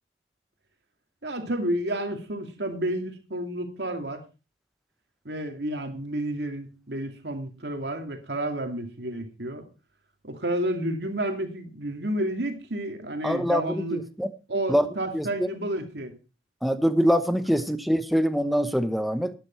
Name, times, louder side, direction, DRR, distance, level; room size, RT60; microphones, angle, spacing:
voice 1, 1.2-4.2 5.2-9.7 10.2-14.0 14.5-16.2, right 1 dB, 70° right, 2.4 m, -30 dB
voice 2, 13.2-14.3 14.7-14.9 15.1-15.5 16.6-19.3, equal, ahead, 0.8 m, -24 dB
12.0 x 9.9 x 4.4 m
head